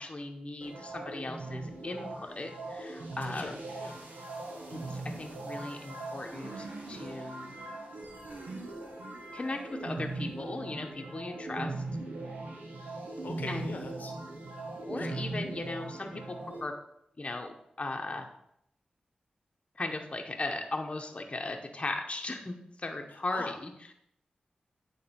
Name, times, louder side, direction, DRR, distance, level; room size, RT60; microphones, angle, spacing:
voice 1, 0.0-3.6 4.7-7.5 9.3-11.8 13.5-13.7 14.9-16.7 17.2-18.3 19.7-23.7, left 2 dB, 40° left, 3 dB, 0.8 m, -37 dB
sound 1, 0.6-16.6, right 2 dB, 85° right, 1.1 m, -40 dB
voice 2, 3.2-4.0 13.2-14.1 14.9-15.2 23.1-23.5, left 3 dB, 80° left, 4 dB, 0.9 m, -43 dB
8.7 x 3.5 x 4.3 m, 0.75 s
cardioid pair, 55°, 3 cm